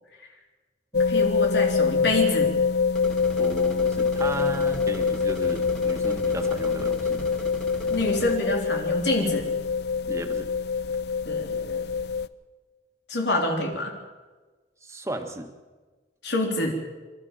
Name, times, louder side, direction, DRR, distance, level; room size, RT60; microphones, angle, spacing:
sound 1, 0.9-12.3, left 5 dB, 65° left, 0.6 m, -25 dB
voice 1, 1.1-2.5 7.9-9.5 11.3-11.8 13.1-13.9 16.2-16.7, left 2 dB, 85° left, 1 dB, 3.6 m, -26 dB
sound 2, 2.9-8.4, equal, 5° left, 2.5 m, -40 dB
voice 2, 3.4-7.2 10.1-10.5 14.8-15.5, right 1 dB, 15° right, 5 dB, 1.7 m, -35 dB
26.5 x 13.5 x 7.4 m, 1.3 s
head